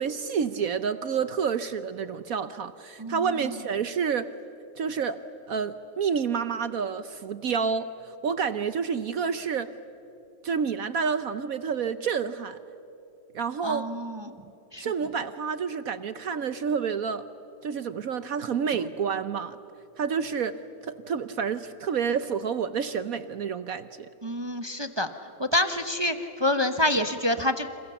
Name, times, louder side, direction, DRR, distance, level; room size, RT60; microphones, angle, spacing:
voice 1, 0.0-4.3 4.8-5.2 5.5-9.7 10.4-12.6 13.3-13.9 14.8-17.3 17.6-19.6 20.0-24.1, right 6 dB, 60° right, 12 dB, 0.9 m, -29 dB
voice 2, 13.6-14.2 14.7-14.8 24.2-25.1 25.4-27.7, left 1 dB, 30° right, 8 dB, 0.5 m, -27 dB
29.5 x 28.5 x 7.1 m, 2.9 s
omnidirectional pair, 2.2 m